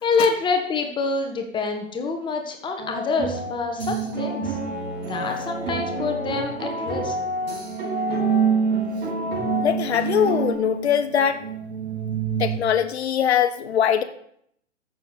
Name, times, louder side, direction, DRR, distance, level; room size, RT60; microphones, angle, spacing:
voice 1, 0.0-4.5 5.1-7.1, left 4 dB, 15° left, 4 dB, 1.2 m, -26 dB
Funny music (orchestra), 2.8-10.5, equal, 50° right, 4.0 m, -31 dB
sound 1, 3.8-12.6, right 6 dB, 35° right, 2.2 m, -28 dB
Bowed string instrument, 4.4-11.5, left 1 dB, 5° right, 4.3 m, -41 dB
voice 2, 9.6-11.4 12.4-14.0, left 8 dB, 60° left, 10 dB, 1.1 m, -21 dB
14.0 x 6.5 x 4.1 m, 0.69 s
figure-of-eight pair, 115°, 37 cm